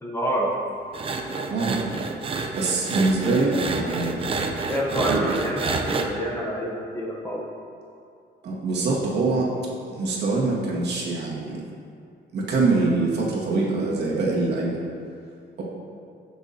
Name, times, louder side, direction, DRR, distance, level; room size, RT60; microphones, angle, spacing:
voice 1, 0.0-0.6 2.9-3.6 4.7-7.5, equal, 15° left, -3 dB, 0.8 m, -28 dB
sound 1, 0.9-6.1, right 4 dB, 30° right, 0.5 m, -29 dB
voice 2, 1.5-1.8 2.6-4.3 5.1-5.3 8.4-9.5 9.9-11.6 12.3-14.8, right 3 dB, 60° right, -4 dB, 1.8 m, -24 dB
15.0 x 6.2 x 2.8 m, 2.4 s
cardioid pair, 180°, 20 cm